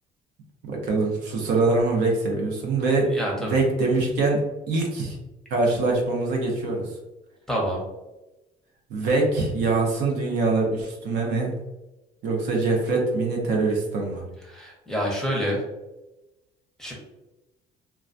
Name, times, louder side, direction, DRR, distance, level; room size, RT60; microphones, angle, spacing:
voice 1, 0.7-4.4 4.7-5.2 5.5-6.9 8.9-11.5 12.2-14.2, right 3 dB, 75° right, 0 dB, 0.7 m, -23 dB
voice 2, 3.1-3.6 7.5-7.8 14.5-15.6 16.8-16.9, equal, 5° left, -2 dB, 0.7 m, -27 dB
2.3 x 2.2 x 2.5 m, 1.0 s
cardioid pair, 110°, 17 cm